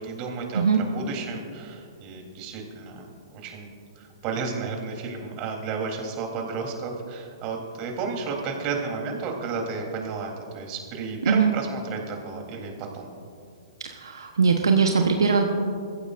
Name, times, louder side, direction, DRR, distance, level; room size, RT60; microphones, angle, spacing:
voice 1, 0.0-3.7 4.0-13.1, right 4 dB, 35° right, 1 dB, 3.5 m, -32 dB
voice 2, 13.8-15.5, right 5 dB, 75° right, 3 dB, 1.1 m, -21 dB
26.5 x 15.0 x 2.6 m, 2.3 s
figure-of-eight pair, 115°, 2 cm